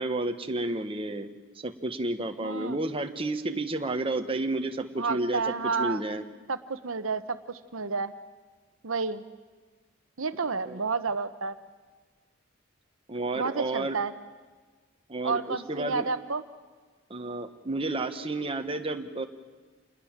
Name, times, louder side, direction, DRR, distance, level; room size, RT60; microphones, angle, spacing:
voice 1, 0.0-6.2 10.6-10.8 13.1-14.0 15.1-16.1 17.1-19.2, right 2 dB, 25° right, 6 dB, 1.3 m, -31 dB
voice 2, 2.4-2.8 5.0-6.0 6.5-8.1 8.8-9.2 10.2-11.6 13.3-14.1 15.2-16.4, right 4 dB, 85° right, 11 dB, 1.0 m, -30 dB
27.5 x 21.0 x 7.5 m, 1.4 s
head